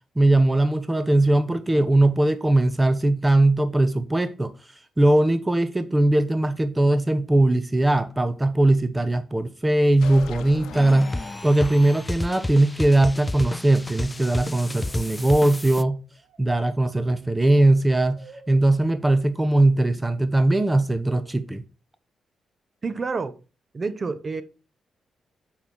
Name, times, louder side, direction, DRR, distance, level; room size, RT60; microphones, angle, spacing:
voice 1, 0.2-4.5 5.0-16.0 16.4-18.2 18.5-21.6, right 1 dB, 20° right, 0.8 m, -20 dB
sound 1, 9.9-12.0, left 7 dB, 85° left, 0.7 m, -40 dB
sound 2, 10.7-15.8, left 2 dB, 20° left, 0.4 m, -32 dB
sound 3, 14.1-15.7 16.2-16.4 17.2-18.7 19.4-20.2 20.5-21.4, right 4 dB, 75° right, 1.8 m, -41 dB
voice 2, 22.8-23.4 23.7-24.4, right 4 dB, 40° right, 1.0 m, -28 dB
6.8 x 5.7 x 4.6 m
supercardioid pair, 60°, 0 cm